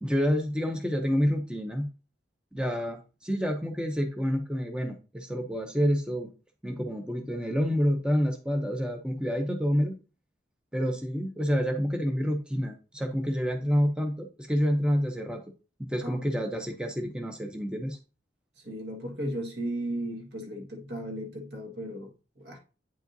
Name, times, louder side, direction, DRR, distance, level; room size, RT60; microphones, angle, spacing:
voice 1, 0.0-1.9 2.5-6.3 6.6-10.0 10.7-15.4 15.8-18.0, equal, 5° right, 0.6 m, -28 dB
voice 2, 18.6-22.1 22.4-22.6, right 1 dB, 65° right, 1.6 m, -35 dB
9.0 x 4.8 x 2.6 m
head